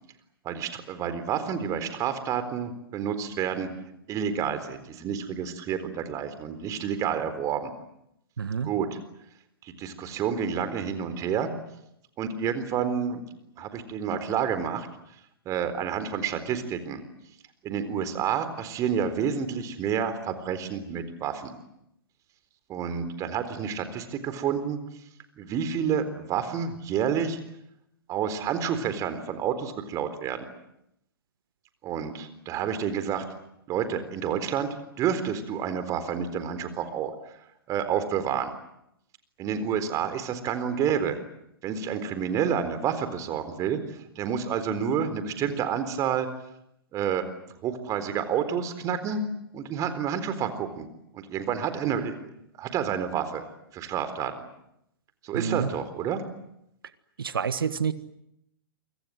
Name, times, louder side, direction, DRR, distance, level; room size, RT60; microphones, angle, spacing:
voice 1, 0.4-3.7 4.1-7.7 8.6-8.9 9.6-11.5 12.2-13.2 13.6-14.9 15.5-17.0 17.6-21.5 22.7-24.8 25.4-27.4 28.1-30.4 31.8-33.2 33.7-34.7 35.0-37.4 37.7-38.5 39.4-41.2 41.6-43.8 44.2-46.3 46.9-47.2 47.6-49.2 49.5-50.9 51.1-52.2 52.6-53.4 53.7-54.3 55.2-56.2, right 8 dB, 25° right, 11 dB, 4.0 m, -29 dB
voice 2, 8.4-8.7 55.3-55.7 57.2-57.9, right 7 dB, 70° right, 14 dB, 1.5 m, -28 dB
29.0 x 25.0 x 7.9 m, 0.80 s
figure-of-eight pair, 110°, 12 cm